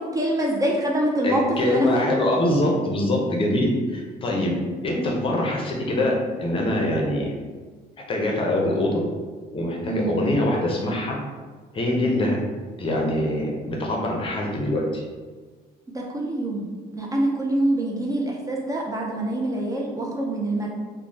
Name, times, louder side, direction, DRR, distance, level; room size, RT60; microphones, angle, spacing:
voice 1, 0.1-1.9 9.9-10.2 15.9-16.7 16.9-20.7, right 1 dB, 20° right, -2 dB, 0.4 m, -25 dB
voice 2, 1.2-4.5 4.8-7.3 8.1-8.9 9.5-11.2 11.7-12.4 12.8-15.0, left 1 dB, 30° left, -1 dB, 0.6 m, -23 dB
3.1 x 2.1 x 2.6 m, 1.4 s
cardioid pair, 110°, 17 cm